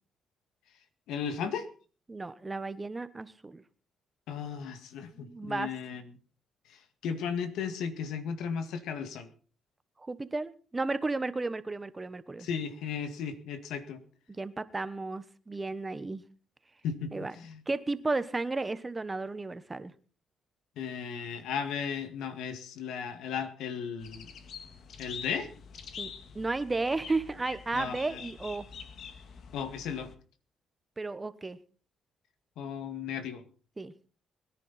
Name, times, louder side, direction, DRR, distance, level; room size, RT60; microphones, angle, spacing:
voice 1, 1.1-1.7 4.3-6.0 6.7-9.3 12.4-14.0 16.8-17.6 20.8-24.3 25.0-25.5 27.7-28.2 29.5-30.1 32.6-33.4, left 7 dB, 85° left, 9 dB, 1.9 m, -35 dB
voice 2, 2.1-3.6 5.1-5.7 10.0-12.5 14.3-16.2 17.1-17.3 17.7-19.9 26.0-28.7 31.0-31.6 33.8-33.9, right 3 dB, 20° right, 13 dB, 1.1 m, -33 dB
sound 1, 24.0-30.1, left 6 dB, 65° left, 1.8 m, -46 dB
22.0 x 10.5 x 4.2 m, 0.39 s
cardioid pair, 90°, 0 cm